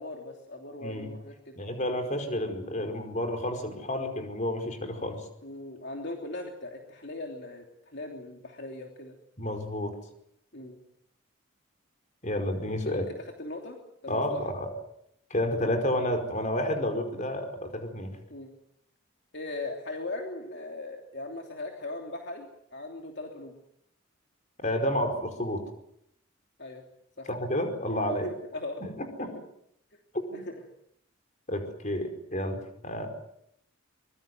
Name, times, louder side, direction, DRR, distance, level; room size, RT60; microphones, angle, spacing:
voice 1, 0.0-1.6 2.8-2.9 5.4-9.1 10.5-10.8 12.9-14.4 18.3-18.5 19.3-23.5 26.6-26.8 27.2-27.3 28.2-28.8 29.2-29.4 30.3-30.5, left 2 dB, 55° left, 2 dB, 3.1 m, -39 dB
voice 2, 0.8-1.1 1.6-5.2 9.4-9.9 12.2-13.0 14.1-14.7 15.3-18.2 24.6-25.6 27.3-28.3 28.8-29.3 30.3-30.4 31.5-33.1, left 1 dB, 35° left, 5 dB, 4.9 m, -30 dB
24.5 x 23.0 x 7.8 m, 0.74 s
head